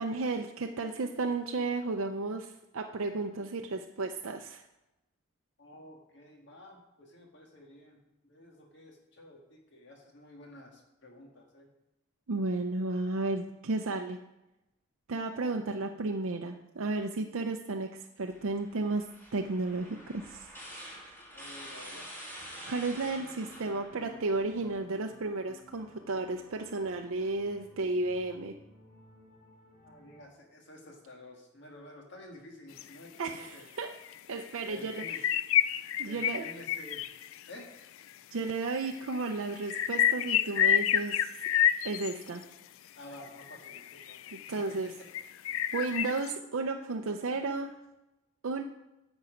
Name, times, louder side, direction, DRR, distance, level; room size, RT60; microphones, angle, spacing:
voice 1, 0.0-4.7 12.3-14.2 15.1-20.5 22.7-28.5 33.2-34.0 34.3-35.3 36.0-36.5 38.3-41.3 41.8-42.5 44.3-44.9 45.7-47.7 48.4-48.6, right 3 dB, 75° right, 4 dB, 0.6 m, -33 dB
voice 2, 5.6-11.7 21.3-22.1 29.8-33.7 34.7-35.2 36.0-37.0 37.5-37.9 43.0-44.2 44.5-44.9 45.7-45.8, left 1 dB, 55° left, 1 dB, 1.9 m, -51 dB
sound 1, 18.3-24.8, equal, 10° left, 2.0 m, -47 dB
sound 2, 22.3-30.2, left 2 dB, 90° left, 4.1 m, -57 dB
sound 3, 32.8-32.9 33.3-33.4 34.0-34.2 34.5-34.6 34.9-37.6 38.5-38.6 38.8-42.4 43.1-44.6 45.1-46.4, left 11 dB, 75° left, 0.3 m, -29 dB
10.0 x 7.1 x 5.1 m, 0.94 s
head